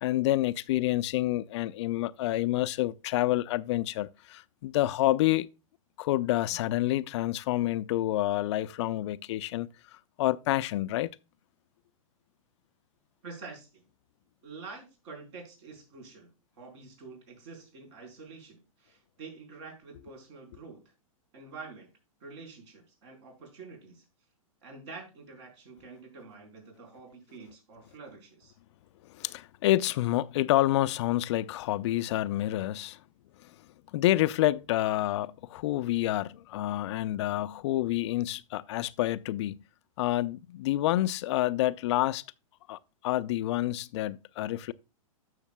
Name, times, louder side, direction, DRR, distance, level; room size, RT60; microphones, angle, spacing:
voice 1, 0.0-5.5 6.0-11.1 29.1-33.0 33.4-33.5 33.9-39.6 40.0-42.2 42.7-44.7, left 15 dB, 55° left, 0.4 m, -28 dB
voice 2, 13.2-13.8 14.4-16.3 16.6-20.8 21.3-21.9 22.2-24.0 24.6-28.5, right 4 dB, 55° right, 4.3 m, -47 dB
12.0 x 6.5 x 2.2 m
hypercardioid pair, 140°, 18 cm